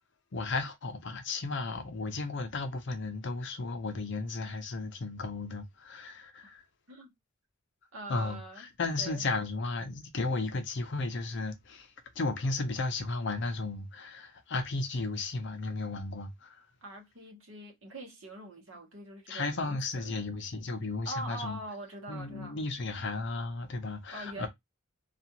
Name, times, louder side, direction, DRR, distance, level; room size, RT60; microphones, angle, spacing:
voice 1, 0.3-6.6 8.1-16.6 19.3-21.6 22.1-24.5, left 3 dB, 55° left, 0.6 m, -34 dB
voice 2, 7.9-8.7 9.0-9.2 16.8-20.3 21.0-22.6 24.1-24.5, right 1 dB, 70° right, 1.0 m, -43 dB
2.4 x 2.4 x 2.8 m
head